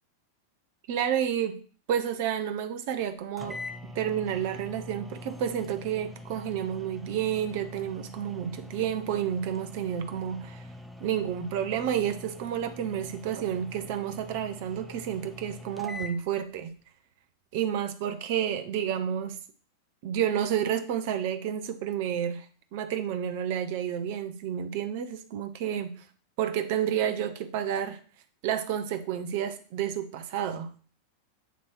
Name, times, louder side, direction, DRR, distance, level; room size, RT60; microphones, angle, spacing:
voice 1, 0.9-1.6 1.9-3.6 3.9-10.6 11.0-16.7 17.5-19.4 20.0-22.5 22.7-26.0 26.4-28.0 28.4-30.7, right 9 dB, 50° right, 0.7 m, -30 dB
sound 1, 3.0-3.1 3.4-16.2, left 2 dB, ahead, 0.6 m, -44 dB
8.0 x 3.0 x 4.5 m
figure-of-eight pair, 90°, 0 cm